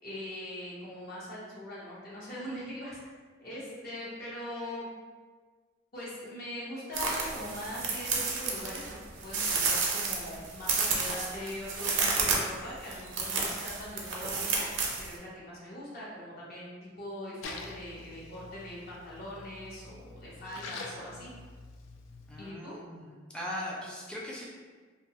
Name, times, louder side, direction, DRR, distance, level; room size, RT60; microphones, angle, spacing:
voice 1, 0.0-3.0 3.4-4.9 5.9-8.8 9.2-21.3 22.4-22.7, left 1 dB, 50° left, -6 dB, 0.7 m, -41 dB
sound 1, 6.9-15.1, right 4 dB, 80° right, 0.5 m, -31 dB
Splash splatter, 17.4-22.5, left 3 dB, 85° left, 0.3 m, -46 dB
voice 2, 22.3-24.5, left 1 dB, 5° left, -5 dB, 0.4 m, -39 dB
2.6 x 2.2 x 2.8 m, 1.5 s
head